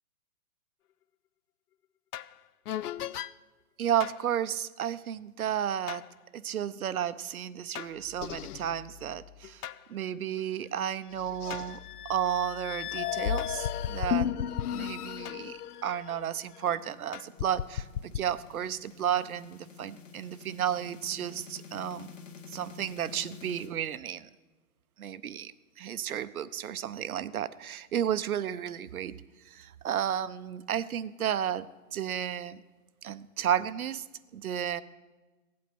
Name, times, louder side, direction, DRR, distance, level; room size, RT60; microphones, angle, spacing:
sound 1, 2.1-2.3 2.7-3.3 4.0-4.2 5.9-6.0 7.7-9.8 10.4-10.5 11.1-16.8 17.1-18.2, left 10 dB, 85° left, 0.6 m, -35 dB
voice 1, 3.8-6.0 6.3-9.6 9.9-11.8 12.1-14.4 14.7-22.1 22.5-24.3 25.0-25.5 25.8-29.1 29.5-31.7 31.9-32.6 33.0-34.0 34.3-34.8, right 9 dB, 70° right, 15 dB, 0.6 m, -32 dB
sound 2, 15.6-23.7, left 6 dB, 55° left, 2.1 m, -50 dB
15.0 x 8.5 x 6.1 m, 1.2 s
hypercardioid pair, 175°, 45 cm